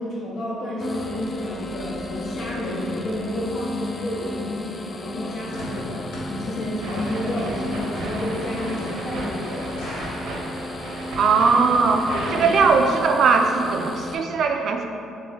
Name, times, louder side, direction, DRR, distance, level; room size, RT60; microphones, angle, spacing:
voice 1, 0.0-6.0 6.3-9.7 12.3-12.6, left 1 dB, 60° left, -7 dB, 0.7 m, -30 dB
sound 1, 0.8-14.2, left 1 dB, 25° left, 0.3 m, -34 dB
sound 2, 5.2-10.3, equal, 90° left, 1.0 m, -39 dB
sound 3, 6.8-12.9, right 1 dB, 85° right, 0.7 m, -34 dB
voice 2, 11.2-14.8, right 4 dB, 55° right, 4 dB, 0.3 m, -19 dB
3.6 x 3.4 x 3.4 m, 2.6 s
cardioid pair, 120°, 0 cm